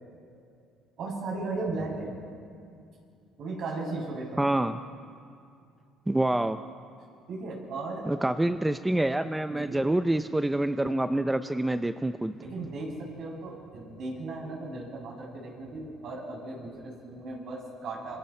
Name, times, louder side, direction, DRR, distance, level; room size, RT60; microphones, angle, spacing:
voice 1, 1.0-2.2 3.4-4.4 7.3-8.0 9.5-9.9 12.4-18.2, right 3 dB, 60° right, -2 dB, 7.4 m, -36 dB
voice 2, 4.4-4.8 6.1-6.6 8.1-12.3, right 1 dB, 10° right, 9 dB, 0.6 m, -26 dB
26.0 x 25.5 x 4.5 m, 2.4 s
cardioid pair, 100°, 0 cm